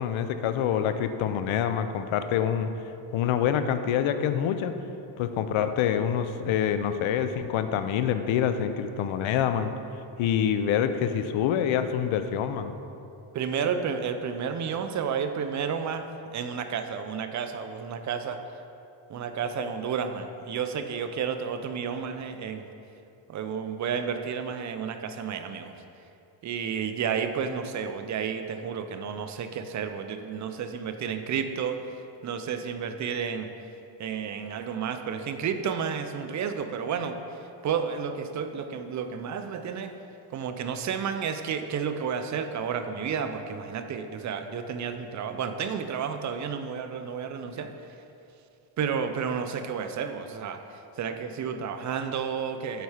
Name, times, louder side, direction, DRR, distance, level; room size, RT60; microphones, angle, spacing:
voice 1, 0.0-2.7 3.1-4.8 5.2-9.7 10.2-12.7, left 9 dB, 70° left, 10 dB, 0.6 m, -26 dB
voice 2, 13.3-16.0 16.3-18.4 19.1-22.7 23.3-25.7 26.4-31.8 32.2-33.5 34.0-37.2 37.6-39.9 40.3-47.7 48.8-50.6 51.0-52.8, right 7 dB, 40° right, 8 dB, 0.4 m, -31 dB
8.1 x 4.2 x 4.9 m, 2.7 s
cardioid pair, 130°, 50 cm